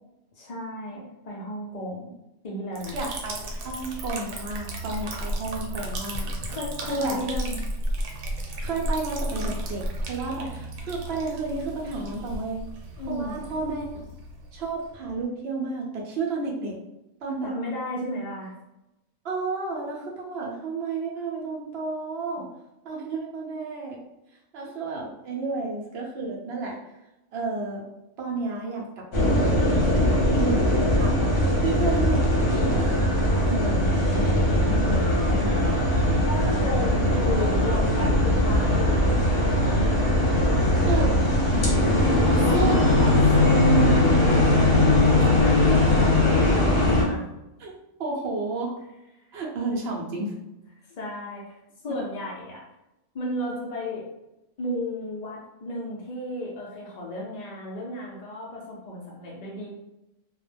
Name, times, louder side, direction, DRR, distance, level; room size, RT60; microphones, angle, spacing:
voice 1, 0.4-2.1 2.4-3.0 6.5-7.6 13.0-13.4 17.4-18.5 36.3-41.3 42.2-47.2 51.0-52.6 53.1-54.1 54.6-59.7, left 1 dB, 80° left, -3 dB, 0.3 m, -34 dB
Liquid, 2.8-15.2, right 1 dB, 85° right, 1.0 m, -34 dB
voice 2, 2.9-6.6 6.9-7.2 8.6-12.6 13.1-13.9 14.5-16.8 17.2-17.5 19.2-22.5 22.8-24.0 24.5-26.8 27.3-27.8 28.2-29.8 30.3-32.8 33.5-35.8 40.9-41.1 42.5-42.8 45.2-45.3 47.6-47.7 48.0-48.7 49.3-50.4, right 3 dB, 60° right, -2 dB, 0.7 m, -31 dB
sound 1, 29.1-47.0, left 1 dB, 50° left, 0.8 m, -20 dB
2.3 x 2.0 x 3.2 m, 0.91 s
omnidirectional pair, 1.4 m